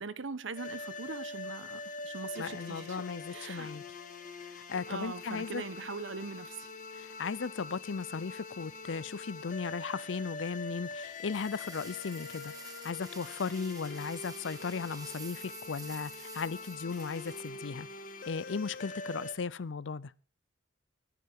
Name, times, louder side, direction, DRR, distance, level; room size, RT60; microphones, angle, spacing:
voice 1, 0.0-3.0 3.3-3.7 4.9-6.7, right 4 dB, 70° right, 1.1 m, -41 dB
sound 1, 0.6-19.3, left 3 dB, 45° left, 1.6 m, -44 dB
voice 2, 2.4-3.8 4.5-5.6 6.9-17.9 18.3-20.1, left 5 dB, 70° left, 0.5 m, -36 dB
sound 2, 11.3-18.0, right 6 dB, 20° right, 1.3 m, -50 dB
21.0 x 9.5 x 3.6 m
head